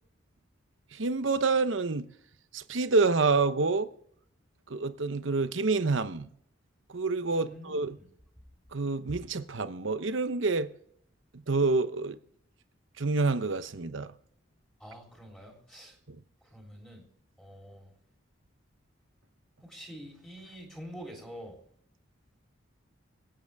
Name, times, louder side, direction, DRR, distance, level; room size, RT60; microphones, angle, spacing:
voice 1, 0.9-2.0 2.5-3.9 4.7-6.3 6.9-8.0 8.7-10.7 11.3-12.2 13.0-14.1 16.1-16.2, right 3 dB, 70° right, 0.9 m, -28 dB
voice 2, 7.3-7.7 14.8-15.9 16.5-17.0 17.4-17.9 19.6-21.6, equal, 5° left, 3.6 m, -46 dB
25.5 x 9.2 x 3.5 m
head